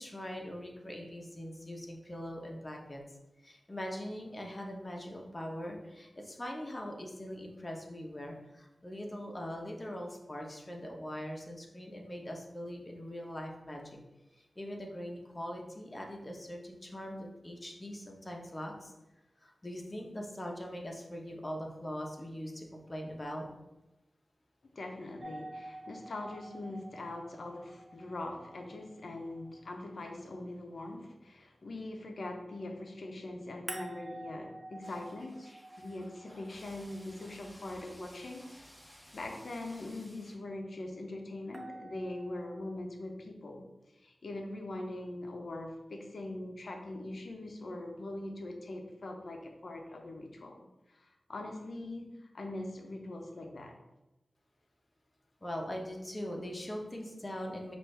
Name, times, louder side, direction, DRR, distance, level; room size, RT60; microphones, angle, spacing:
voice 1, 0.0-3.0 3.4-14.0 14.6-18.9 19.4-23.5 55.4-57.8, equal, 30° left, 0 dB, 1.0 m, -41 dB
voice 2, 24.6-38.5 39.1-43.6 43.9-53.8, left 2 dB, 75° left, 3 dB, 0.7 m, -42 dB
sound 1, 25.2-30.2 33.7-37.8 41.5-42.7, right 1 dB, 35° right, 0.7 m, -49 dB
sound 2, 34.8-40.3, equal, ahead, 1.5 m, -56 dB
6.0 x 2.6 x 3.3 m, 0.98 s
cardioid pair, 45°, 0 cm